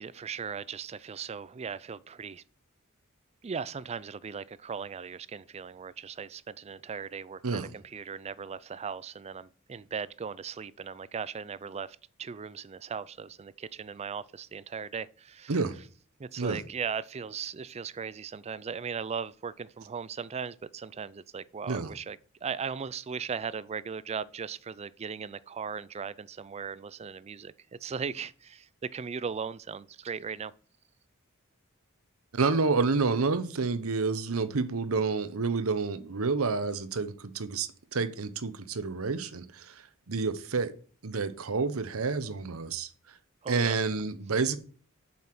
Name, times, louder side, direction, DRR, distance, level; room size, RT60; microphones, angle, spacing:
voice 1, 0.0-2.4 3.4-15.6 16.2-27.5 27.8-30.5 43.4-43.8, right 6 dB, 30° right, 0.4 m, -38 dB
voice 2, 7.4-7.7 15.5-15.8 16.4-16.6 21.7-21.9 32.3-40.7 41.0-42.9 43.5-44.6, right 4 dB, 80° right, 0.9 m, -29 dB
7.5 x 5.7 x 6.0 m
head